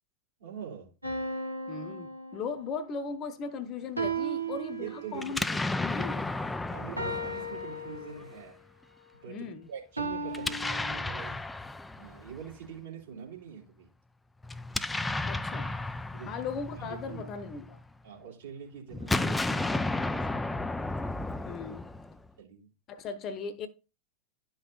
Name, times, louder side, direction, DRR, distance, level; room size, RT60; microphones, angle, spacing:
voice 1, 0.4-0.9 4.2-5.5 6.7-8.6 9.2-11.4 12.0-13.9 16.1-16.4 16.8-17.3 18.0-20.6 22.4-22.7, right 8 dB, 60° right, 2.8 m, -44 dB
sound 1, 1.0-2.8 4.0-5.4 7.0-8.5 10.0-11.0, right 2 dB, 85° right, 1.3 m, -36 dB
voice 2, 1.7-6.3 9.3-9.7 15.3-15.7 16.3-17.8 21.5-21.9 22.9-23.7, left 5 dB, 30° left, 0.9 m, -38 dB
Explosion, 5.2-8.2 10.3-12.5 14.4-17.9 18.9-22.3, left 2 dB, 5° left, 0.4 m, -33 dB
11.5 x 5.5 x 2.4 m
figure-of-eight pair, 90°, 0 cm